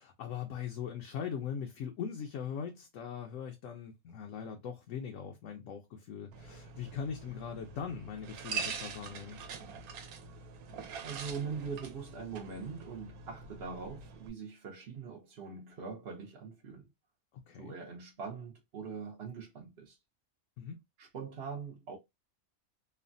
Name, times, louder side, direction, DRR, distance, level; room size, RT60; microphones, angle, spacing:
voice 1, 0.0-9.4 17.5-17.7 20.6-20.8, left 7 dB, 70° left, 0.9 m, -40 dB
sound 1, 6.3-14.3, right 5 dB, 80° right, 1.1 m, -44 dB
voice 2, 11.0-16.9 17.6-20.0 21.0-22.0, right 5 dB, 55° right, 0.8 m, -42 dB
3.1 x 2.1 x 2.5 m
omnidirectional pair, 1.5 m